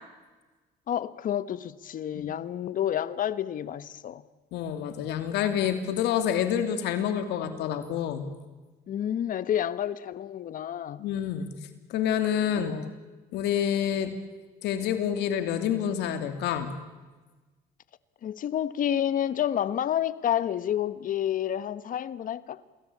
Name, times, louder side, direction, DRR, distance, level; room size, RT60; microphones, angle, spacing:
voice 1, 0.9-4.2 8.9-11.0 12.5-12.9 18.2-22.6, left 10 dB, 55° left, 1.2 m, -29 dB
voice 2, 4.5-8.3 11.0-11.5 11.9-12.8 13.3-14.1 14.6-16.7, left 9 dB, 85° left, 2.7 m, -28 dB
28.0 x 21.0 x 8.6 m
cardioid pair, 110°, 17 cm